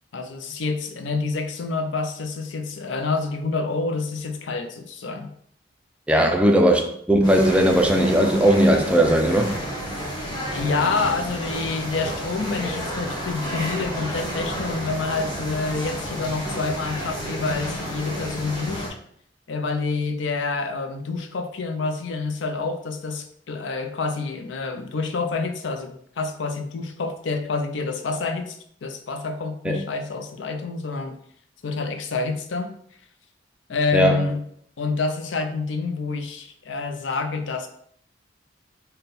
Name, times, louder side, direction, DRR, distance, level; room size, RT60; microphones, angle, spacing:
voice 1, 0.1-5.3 6.2-6.4 10.5-18.9 19.5-31.2 31.6-32.8 33.7-34.4 34.8-37.7, left 4 dB, 75° left, 0.5 m, -28 dB
voice 2, 6.1-9.6 29.7-29.8 33.9-34.2, right 1 dB, 5° right, 0.4 m, -18 dB
sound 1, 7.2-18.9, equal, 25° left, 0.9 m, -31 dB
3.4 x 2.2 x 4.1 m
head